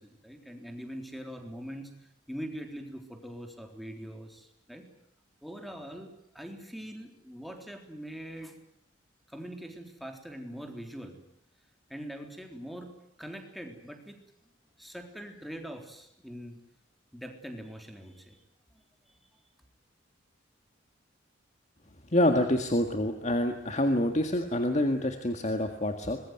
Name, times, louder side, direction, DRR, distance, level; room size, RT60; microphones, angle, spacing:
voice 1, 0.0-4.9 5.4-6.1 6.3-8.6 9.3-11.2 11.9-12.9 13.2-14.2 14.4-16.6 17.1-18.4 18.7-18.8 19.1-19.2, equal, ahead, 4 dB, 3.8 m, -43 dB
voice 2, 22.1-26.2, left 1 dB, 35° left, 6 dB, 1.9 m, -27 dB
25.0 x 21.0 x 9.5 m, 0.74 s
head